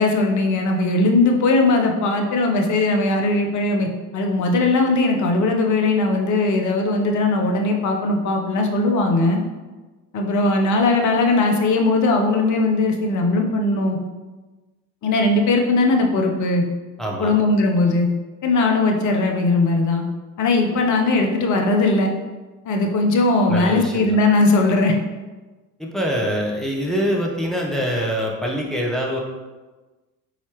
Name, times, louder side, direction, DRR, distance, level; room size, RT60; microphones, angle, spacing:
voice 1, 0.0-3.9 4.1-9.4 10.1-14.0 15.0-16.6 17.2-18.1 18.4-20.0 20.4-22.1 22.6-24.9, left 2 dB, 45° left, 3 dB, 0.8 m, -19 dB
voice 2, 17.0-17.4 23.5-24.1 25.8-29.2, equal, ahead, -2 dB, 0.8 m, -24 dB
4.1 x 4.0 x 3.0 m, 1.2 s
hypercardioid pair, 60°, 40 cm